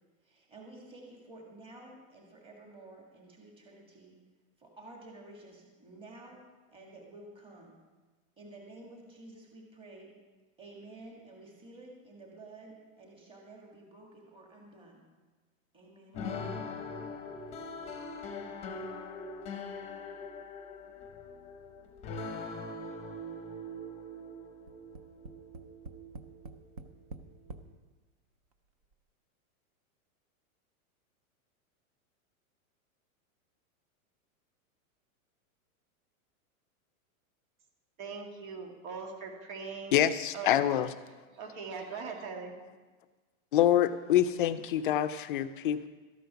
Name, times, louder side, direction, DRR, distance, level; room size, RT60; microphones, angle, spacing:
voice 1, 0.2-4.2 4.6-7.7 8.4-10.1 10.6-15.0 15.7-16.6, right 2 dB, 10° right, -1 dB, 1.9 m, -51 dB
sound 1, 16.1-27.6, left 2 dB, 15° left, 0.8 m, -42 dB
Tap, 24.7-27.7 28.5-28.6 28.9-29.0, right 3 dB, 30° right, 0.3 m, -46 dB
voice 2, 38.0-40.0 40.3-40.6 41.3-42.5, right 5 dB, 65° right, 1 dB, 2.6 m, -40 dB
voice 3, 39.9-40.9 43.5-45.9, left 11 dB, 40° left, 12 dB, 0.4 m, -26 dB
13.0 x 9.2 x 5.7 m, 1.3 s
supercardioid pair, 170°, 43 cm